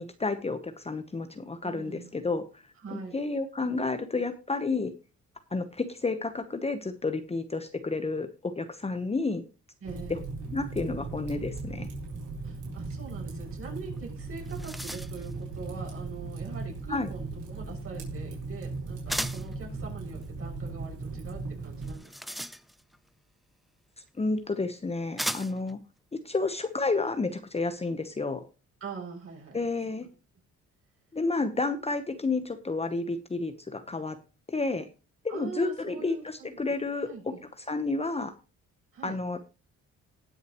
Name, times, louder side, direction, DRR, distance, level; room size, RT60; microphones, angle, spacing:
voice 1, 0.0-2.4 2.9-4.9 5.5-9.4 10.1-10.2 10.5-11.9 16.9-17.1 24.2-25.8 26.2-28.4 29.5-30.1 31.1-34.2 34.5-34.9 35.2-37.3 37.7-38.3 39.0-39.5, left 3 dB, 20° left, 8 dB, 1.0 m, -30 dB
voice 2, 1.6-2.1 2.8-3.2 9.8-10.2 12.4-22.4 28.8-29.7 30.0-30.1 35.3-36.6 37.0-37.4 38.9-39.2, right 5 dB, 50° right, -1 dB, 6.4 m, -43 dB
Fire, 9.8-22.0, right 3 dB, 80° right, 4.1 m, -38 dB
sound 1, 14.0-14.1 14.3-15.3 19.1-19.6 21.8-23.0 24.1-24.2 25.2-25.7, equal, ahead, 0.5 m, -35 dB
19.5 x 6.6 x 3.0 m, 0.32 s
cardioid pair, 90°, 30 cm